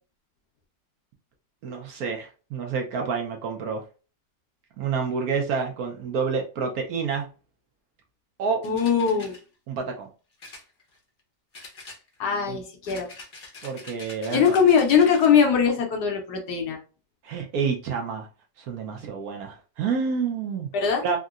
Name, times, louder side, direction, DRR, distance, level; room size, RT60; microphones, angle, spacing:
voice 1, 1.6-3.8 4.8-7.3 8.4-8.6 9.7-10.1 12.5-12.6 13.6-14.4 17.2-18.3 18.6-20.7 21.0-21.2, right 5 dB, 70° right, 2 dB, 0.9 m, -28 dB
voice 2, 8.6-9.4 12.2-13.1 14.3-16.8 20.7-21.0, left 7 dB, 70° left, 2 dB, 1.2 m, -21 dB
sound 1, 8.6-9.4 10.4-11.2 11.5-12.4 12.8-15.4, left 3 dB, 45° left, 0.7 m, -44 dB
3.6 x 2.0 x 2.4 m, 0.35 s
omnidirectional pair, 2.0 m